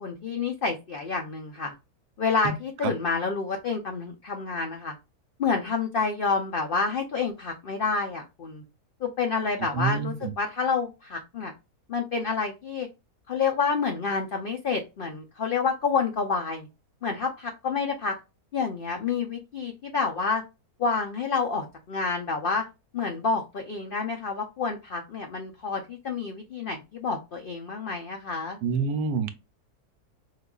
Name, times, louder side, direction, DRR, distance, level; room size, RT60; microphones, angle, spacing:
voice 1, 0.0-1.7 2.2-4.9 5.4-8.6 9.0-11.5 11.9-12.9 13.3-16.7 17.0-18.2 18.5-20.4 20.8-22.6 22.9-28.6, left 5 dB, 70° left, 0.5 m, -28 dB
voice 2, 9.7-10.3 28.6-29.3, right 5 dB, 85° right, 1.2 m, -27 dB
4.7 x 2.5 x 2.3 m
omnidirectional pair, 1.7 m